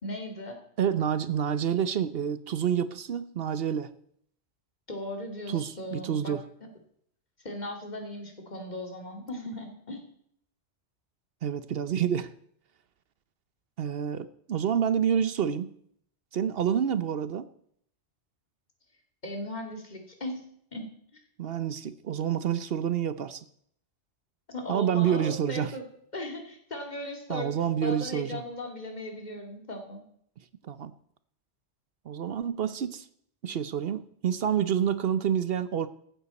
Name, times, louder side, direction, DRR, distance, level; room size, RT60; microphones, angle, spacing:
voice 1, 0.0-0.6 4.9-6.3 7.4-10.0 19.2-20.4 20.7-20.8 24.5-25.8 26.1-27.5 27.8-30.0, left 1 dB, 40° left, 2 dB, 2.5 m, -37 dB
voice 2, 0.8-3.9 5.5-6.4 11.4-12.3 13.8-15.7 16.3-17.5 21.4-23.4 24.7-25.7 27.3-28.4 30.6-30.9 32.1-33.0 33.4-35.9, right 8 dB, 60° right, 14 dB, 0.9 m, -28 dB
15.0 x 12.0 x 4.1 m, 0.67 s
omnidirectional pair, 1.2 m